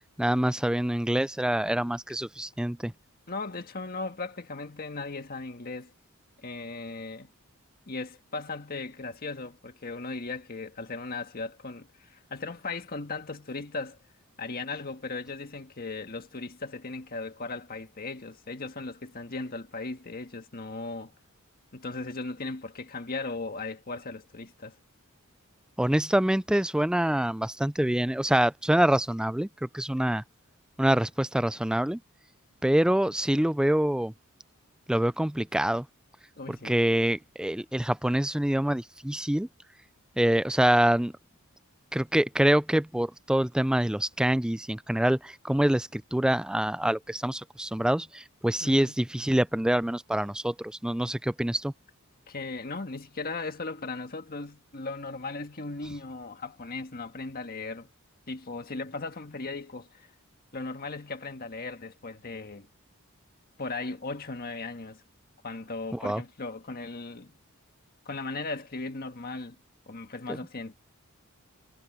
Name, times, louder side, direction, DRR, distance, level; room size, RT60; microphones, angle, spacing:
voice 1, 0.2-2.9 25.8-30.2 30.8-32.0 32.6-34.1 34.9-35.9 36.5-39.5 40.2-41.1 41.9-51.7 65.9-66.2 70.3-70.4, right 1 dB, 5° right, 0.3 m, -25 dB
voice 2, 3.3-5.9 6.4-7.3 7.9-14.0 14.4-21.1 21.7-24.7 36.4-36.8 48.6-48.9 52.3-57.9 58.3-60.1 60.5-62.7 63.6-65.0 65.4-67.4 68.0-69.5 69.9-70.8, left 3 dB, 45° left, 1.6 m, -37 dB
head